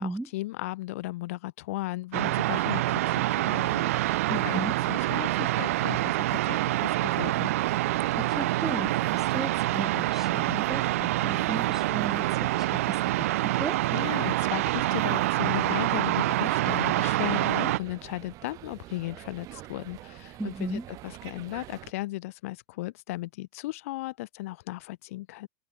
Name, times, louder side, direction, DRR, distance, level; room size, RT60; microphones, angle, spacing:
voice 1, 0.0-3.0 3.3-4.6 4.9-7.5 13.9-25.5, left 18 dB, 80° left, 1.0 m, -36 dB
sound 1, 2.1-17.8, right 16 dB, 80° right, 1.2 m, -26 dB
sound 2, 3.6-21.9, right 17 dB, 50° right, 4.6 m, -45 dB
voice 2, 4.3-4.8 8.2-13.8 20.4-20.9, right 2 dB, 5° right, 1.5 m, -36 dB
supercardioid pair, 120°, 8 cm